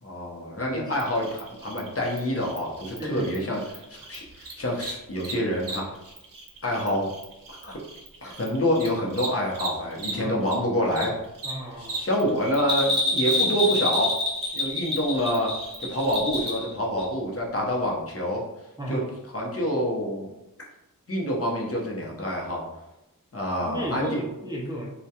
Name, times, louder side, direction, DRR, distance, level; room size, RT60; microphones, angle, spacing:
voice 1, 0.0-5.8 6.6-7.1 7.6-7.8 8.2-11.1 11.8-14.2 14.5-15.5 15.8-18.4 18.9-19.0 19.3-20.3 21.1-22.6 23.3-24.2, equal, 40° left, -3 dB, 0.7 m, -27 dB
Cricket, 0.9-10.6 10.9-16.5, right 3 dB, 70° right, 0.6 m, -40 dB
voice 2, 3.0-3.4 10.2-10.4 11.4-12.0 18.8-19.1 23.6-24.9, equal, 10° right, -3 dB, 0.4 m, -34 dB
Bell, 12.6-16.7 17.0-17.1, left 2 dB, 30° right, 1.0 m, -26 dB
2.2 x 2.2 x 2.8 m, 0.93 s
wide cardioid pair, 70°, 35 cm